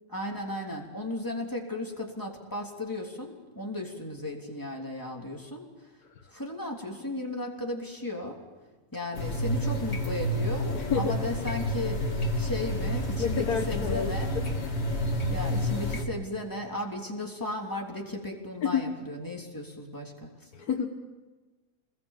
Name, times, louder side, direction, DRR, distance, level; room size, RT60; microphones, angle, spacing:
voice 1, 0.1-5.9 6.3-8.4 8.9-14.3 15.3-20.5, left 1 dB, 15° left, 0 dB, 3.3 m, -35 dB
sound 1, 9.1-16.0, equal, 45° left, 2.3 m, -29 dB
voice 2, 10.7-11.1 13.2-14.1 18.6-18.9 20.5-20.9, left 7 dB, 80° left, 2 dB, 1.7 m, -29 dB
27.5 x 21.0 x 7.4 m, 1.3 s
omnidirectional pair, 1.6 m